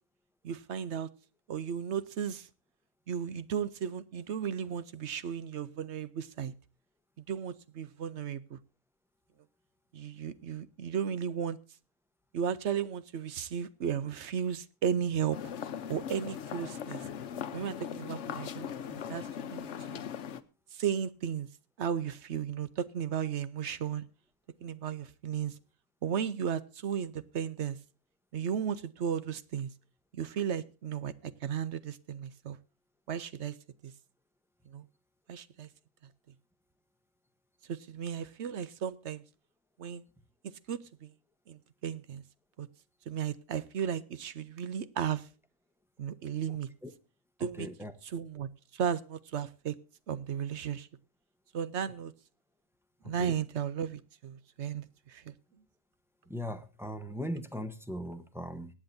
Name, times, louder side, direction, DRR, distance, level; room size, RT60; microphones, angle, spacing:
voice 1, 0.4-1.1 1.5-2.5 3.1-6.5 7.3-8.6 9.9-11.6 12.3-15.4 15.9-17.0 17.5-20.0 20.7-21.5 21.8-24.1 24.6-25.6 26.0-27.8 28.3-29.7 30.1-32.6 33.1-33.5 33.8-33.9 34.7-34.8 35.3-35.7 37.7-39.2 39.8-40.0 40.4-41.1 41.5-42.2 42.6-42.7 43.1-45.3 46.0-46.7 47.4-47.7 48.0-49.8 50.1-50.9 51.5-52.1 53.0-55.3, right 8 dB, 65° right, 1.0 m, -35 dB
sound 1, 15.3-20.4, left 8 dB, 65° left, 1.1 m, -39 dB
voice 2, 47.4-47.9 53.0-53.3 56.3-58.7, equal, ahead, 0.8 m, -39 dB
23.0 x 8.8 x 2.6 m
omnidirectional pair, 1.3 m